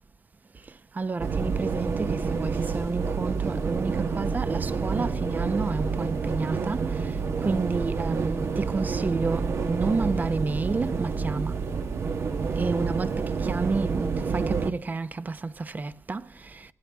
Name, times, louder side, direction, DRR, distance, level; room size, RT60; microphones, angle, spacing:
voice 1, 1.0-6.8 7.4-11.5 12.5-16.2, right 3 dB, 35° right, 0.9 m, -30 dB
sound 1, 1.2-14.7, right 5 dB, 60° right, 1.5 m, -28 dB
23.0 x 17.0 x 3.6 m
cardioid pair, 100°, 5 cm